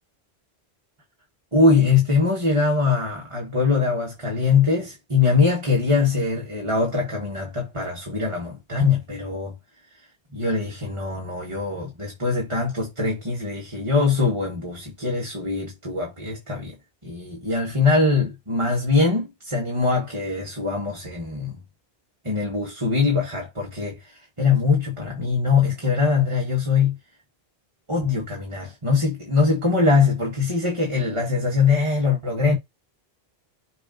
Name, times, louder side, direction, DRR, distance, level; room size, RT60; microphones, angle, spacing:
voice 1, 1.5-9.5 10.3-16.7 17.0-21.6 22.2-27.0 27.9-32.6, left 4 dB, 30° right, 1.9 m, -22 dB
6.8 x 2.8 x 5.1 m
omnidirectional pair, 1.0 m